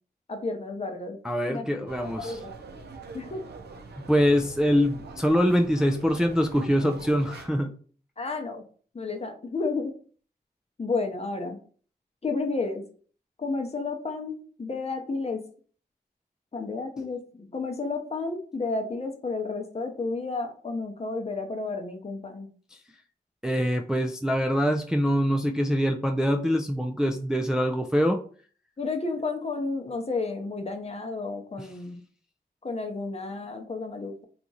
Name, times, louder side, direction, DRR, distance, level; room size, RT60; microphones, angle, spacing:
voice 1, 0.3-1.2 1.5-1.7 2.2-2.5 3.1-3.4 8.2-8.6 8.9-10.0 10.8-11.6 12.2-12.9 13.4-15.5 16.5-22.5 28.8-32.0 32.6-34.1, left 3 dB, 40° left, 4 dB, 0.7 m, -31 dB
voice 2, 1.2-2.4 4.1-7.7 23.4-28.2 31.6-31.7, equal, 5° right, 4 dB, 0.3 m, -24 dB
sound 1, 1.9-7.5, right 4 dB, 85° right, 0.6 m, -44 dB
2.9 x 2.5 x 3.8 m, 0.43 s
wide cardioid pair, 75°, 17 cm